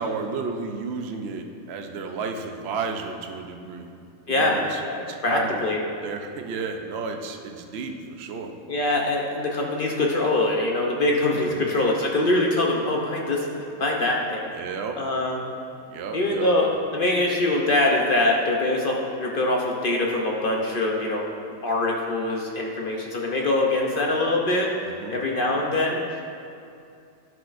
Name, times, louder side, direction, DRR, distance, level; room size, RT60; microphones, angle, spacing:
voice 1, 0.0-3.9 4.3-5.6 6.0-8.5 11.4-11.7 14.5-15.0 15.9-16.6 24.8-25.2, right 4 dB, 60° right, 4 dB, 0.7 m, -32 dB
voice 2, 4.3-4.6 4.8-5.8 8.7-14.4 15.0-15.5 16.1-21.3 21.6-24.8 25.1-26.3, left 2 dB, 55° left, -1 dB, 0.6 m, -23 dB
11.0 x 6.0 x 2.5 m, 2.5 s
omnidirectional pair, 1.6 m